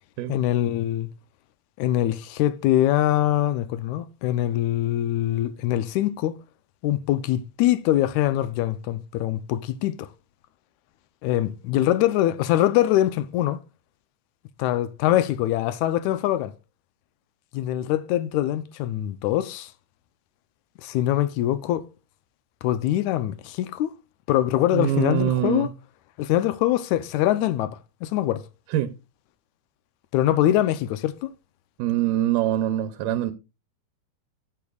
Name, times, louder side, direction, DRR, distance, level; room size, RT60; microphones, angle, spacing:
voice 1, 0.3-1.1 1.8-6.4 6.8-10.1 11.2-13.6 14.6-16.5 17.5-19.7 20.8-21.8 22.6-23.9 24.3-25.7 26.2-28.4 30.1-31.3, left 13 dB, 80° left, 1.8 m, -23 dB
voice 2, 24.7-25.7 28.7-28.9 31.8-33.3, right 12 dB, 85° right, 2.2 m, -24 dB
13.5 x 8.4 x 2.3 m
omnidirectional pair, 3.7 m